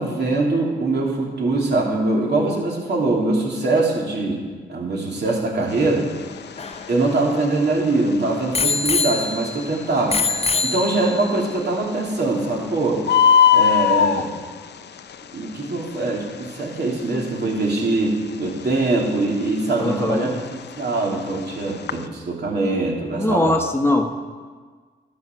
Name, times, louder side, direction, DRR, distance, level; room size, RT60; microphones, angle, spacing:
voice 1, 0.0-4.4 4.7-6.1 6.9-10.2 10.6-13.0 13.5-14.3 15.3-23.5, right 2 dB, 60° right, -2 dB, 2.9 m, -22 dB
Bird, 5.7-22.1, left 8 dB, 60° left, 0.6 m, -24 dB
Bicycle bell, 6.2-7.9 8.5-9.7 10.1-11.4 12.1-12.2, left 4 dB, 30° left, 0.9 m, -24 dB
voice 2, 19.8-20.3 23.2-24.1, left 1 dB, 10° left, 4 dB, 1.2 m, -20 dB
12.0 x 7.3 x 6.1 m, 1.5 s
supercardioid pair, 50°, 20 cm